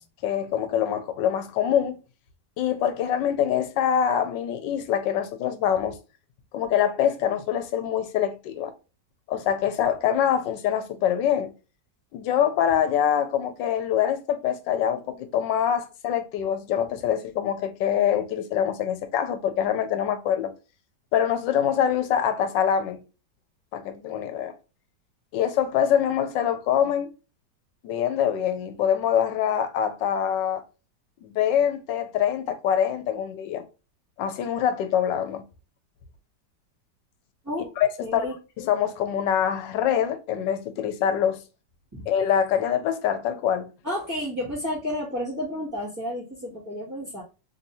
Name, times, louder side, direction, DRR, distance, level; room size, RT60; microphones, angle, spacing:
voice 1, 0.2-2.0 2.6-6.0 6.5-8.7 9.3-11.5 12.1-20.5 21.1-23.0 23.7-24.6 25.3-27.1 27.8-30.6 31.2-33.6 34.2-35.4 37.8-38.3 38.6-41.4 42.1-43.7, left 9 dB, 90° left, 1.3 m, -24 dB
voice 2, 38.0-38.3 41.9-42.1 43.8-47.2, left 1 dB, 15° right, 0.8 m, -31 dB
3.4 x 2.7 x 2.6 m
omnidirectional pair, 1.9 m